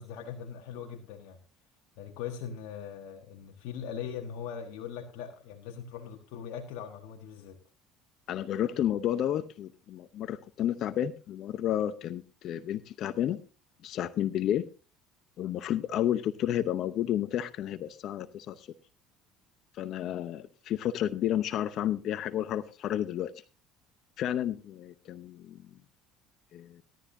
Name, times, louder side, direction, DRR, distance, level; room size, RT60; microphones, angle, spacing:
voice 1, 0.0-1.4 2.0-7.6, left 8 dB, 75° left, 2 dB, 1.4 m, -40 dB
voice 2, 8.3-13.4 13.8-14.7 15.4-18.7 19.8-23.3 24.2-25.7 26.5-26.8, left 11 dB, 60° left, 13 dB, 0.7 m, -31 dB
16.5 x 12.0 x 2.7 m, 0.34 s
supercardioid pair, 85°, 0 cm